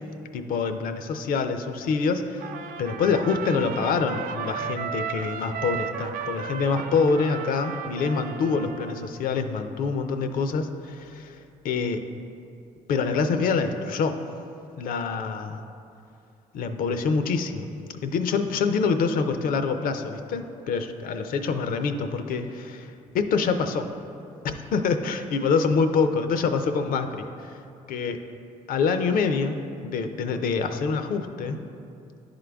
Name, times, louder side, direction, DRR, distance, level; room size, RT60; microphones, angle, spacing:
voice 1, 0.3-2.5 2.8-11.4 11.6-12.0 12.9-14.2 14.8-15.6 16.5-17.7 18.0-23.9 24.4-27.6 27.9-28.2 28.7-29.6 29.8-31.6, left 5 dB, 75° left, 8 dB, 0.5 m, -26 dB
Trumpet, 2.4-9.1, right 7 dB, 75° right, 0.4 m, -35 dB
10.5 x 3.8 x 3.4 m, 2.6 s
supercardioid pair, 70°, 15 cm